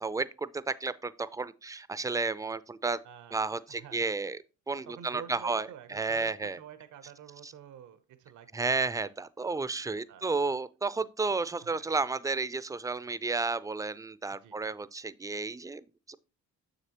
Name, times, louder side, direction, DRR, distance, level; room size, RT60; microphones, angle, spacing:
voice 1, 0.0-3.0 3.3-4.4 4.7-6.6 7.4-7.5 8.5-16.2, right 3 dB, 10° right, 0.4 m, -32 dB
voice 2, 3.0-4.3 4.9-8.9 10.1-10.3 11.6-11.9 14.3-14.5, right 9 dB, 75° right, 0.8 m, -49 dB
7.0 x 6.6 x 2.9 m
cardioid pair, 90°, 30 cm